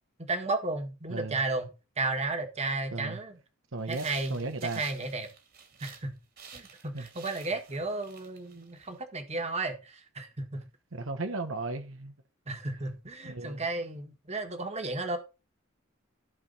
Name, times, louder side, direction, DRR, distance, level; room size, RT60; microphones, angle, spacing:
voice 1, 0.2-1.7 2.0-3.4 3.9-5.3 5.8-6.1 6.5-10.7 12.5-15.2, right 2 dB, 35° right, 1.8 m, -33 dB
voice 2, 1.1-1.4 2.9-3.2 3.7-4.8 6.9-7.1 10.9-12.1 13.2-13.6, right 3 dB, 85° right, 1.1 m, -35 dB
sound 1, 3.8-6.1 6.4-9.0, right 6 dB, 50° right, 2.5 m, -51 dB
15.0 x 5.0 x 4.1 m
head